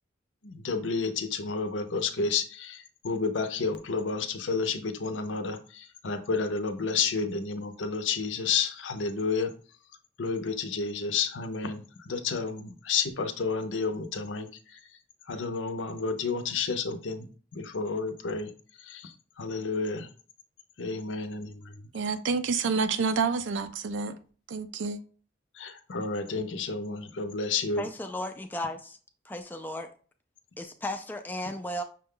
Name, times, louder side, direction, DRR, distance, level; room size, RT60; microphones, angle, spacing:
voice 1, 0.4-2.8 3.0-9.5 10.2-14.5 15.3-17.2 17.6-18.5 18.9-19.1 19.4-20.1 20.8-21.5 25.6-27.8, left 4 dB, 75° left, 0.6 m, -30 dB
voice 2, 21.9-24.2 24.5-25.0, right 5 dB, 75° right, 0.4 m, -28 dB
voice 3, 27.8-29.0 29.3-29.9 30.6-31.8, left 1 dB, 10° left, 0.3 m, -35 dB
6.0 x 2.2 x 3.7 m
head